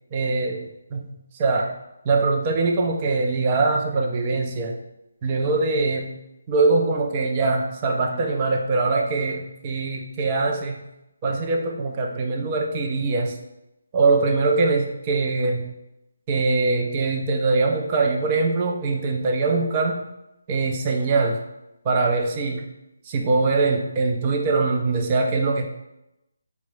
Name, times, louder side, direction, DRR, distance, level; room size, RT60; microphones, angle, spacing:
voice 1, 0.1-1.1 1.4-1.7 2.1-4.8 5.2-6.2 6.5-10.9 11.2-13.4 13.9-15.7 16.3-20.1 20.5-21.4 21.8-22.7 23.1-25.7, right 3 dB, 20° right, 1 dB, 0.4 m, -22 dB
4.4 x 2.0 x 3.2 m, 0.91 s
hypercardioid pair, 170°, 0 cm